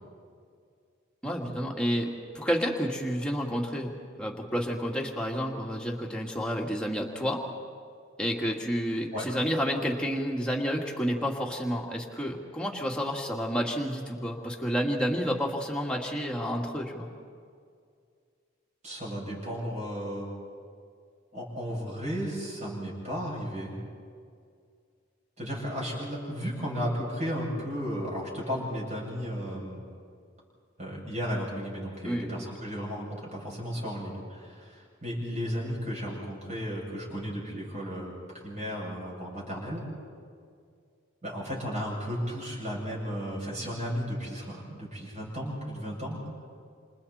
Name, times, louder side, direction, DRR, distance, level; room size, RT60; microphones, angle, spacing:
voice 1, 1.2-3.9 4.2-7.4 8.2-17.1 32.0-32.4, equal, 5° left, -1 dB, 2.3 m, -30 dB
voice 2, 18.8-20.3 21.3-23.7 25.4-29.8 30.8-38.1 38.4-39.8 41.2-46.2, equal, 35° right, -4 dB, 7.7 m, -34 dB
28.5 x 28.0 x 4.4 m, 2.2 s
head